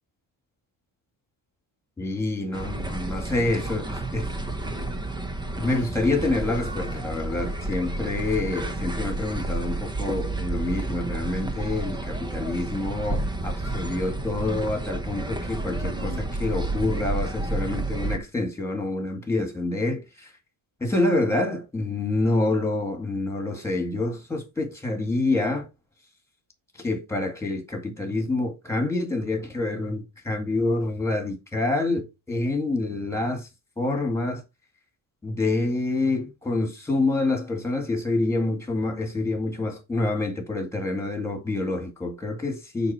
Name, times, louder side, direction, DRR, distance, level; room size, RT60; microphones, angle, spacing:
voice 1, 2.0-4.3 5.6-20.3 20.8-25.7 26.8-33.5 33.8-34.4 35.2-42.9, left 2 dB, 5° left, 2.1 m, -27 dB
sound 1, 2.5-18.2, right 2 dB, 10° right, 0.7 m, -30 dB
6.6 x 5.5 x 4.4 m
cardioid pair, 180°, 48 cm